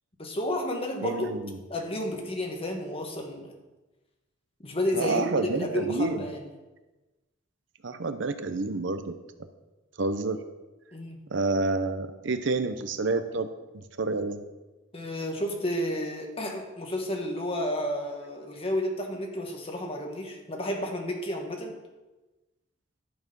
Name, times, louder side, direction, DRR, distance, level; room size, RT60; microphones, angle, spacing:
voice 1, 0.2-1.3 1.7-3.5 4.6-6.4 10.9-11.2 14.9-21.8, left 1 dB, 30° left, 2 dB, 1.5 m, -31 dB
voice 2, 1.0-1.6 4.9-6.2 7.8-9.1 10.0-10.4 11.3-14.4, right 3 dB, 65° right, 10 dB, 0.7 m, -29 dB
12.0 x 6.6 x 5.4 m, 1.1 s
head